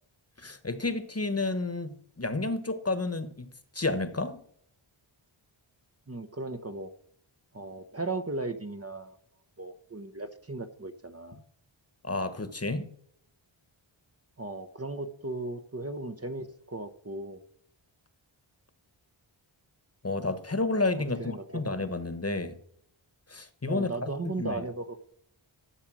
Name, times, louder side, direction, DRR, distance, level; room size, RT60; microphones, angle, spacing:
voice 1, 0.4-3.4 3.7-4.4 12.0-12.9 20.0-22.5 23.3-24.1 24.4-24.6, left 2 dB, 30° left, 1.2 m, -30 dB
voice 2, 6.1-6.9 7.5-9.2 9.6-11.4 14.4-17.4 21.0-21.6 23.7-25.0, right 2 dB, 30° right, 0.9 m, -36 dB
12.5 x 7.2 x 6.2 m
wide cardioid pair, 70°, 49 cm